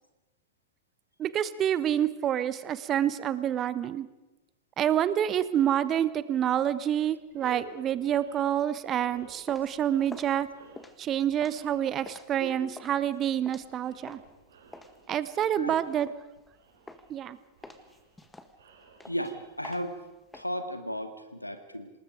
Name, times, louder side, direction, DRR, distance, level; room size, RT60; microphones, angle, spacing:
voice 1, 1.2-4.1 4.8-10.5 11.0-14.2 15.1-16.1 17.1-17.4, right 10 dB, 30° right, 16 dB, 1.1 m, -27 dB
sound 1, 6.8-6.9 7.2-19.6, right 5 dB, 65° right, 4.5 m, -51 dB
sound 2, 9.1-14.4 14.7-16.5 16.9-17.3 17.6-20.4, left 2 dB, 10° left, 1.6 m, -48 dB
voice 2, 19.1-20.0 20.3-21.9, equal, 90° left, 9 dB, 2.0 m, -35 dB
27.0 x 19.5 x 5.1 m, 1.0 s
figure-of-eight pair, 90°, 0 cm